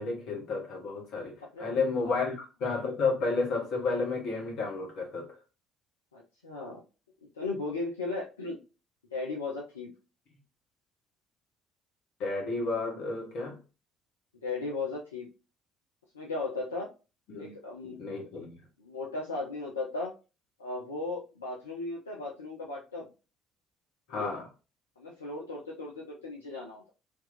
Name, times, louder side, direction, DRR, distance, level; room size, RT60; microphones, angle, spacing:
voice 1, 0.0-5.4 12.2-13.6 17.3-17.5 17.8-18.6 24.1-24.5, left 4 dB, 55° left, 1.2 m, -32 dB
voice 2, 6.1-6.8 7.4-8.6 9.1-9.9 14.4-15.3 16.1-16.9 17.4-18.2 18.8-20.1 20.6-23.1 24.1-24.3 25.0-26.9, left 3 dB, 80° left, 0.6 m, -36 dB
3.5 x 2.9 x 2.5 m
figure-of-eight pair, 50°, 0 cm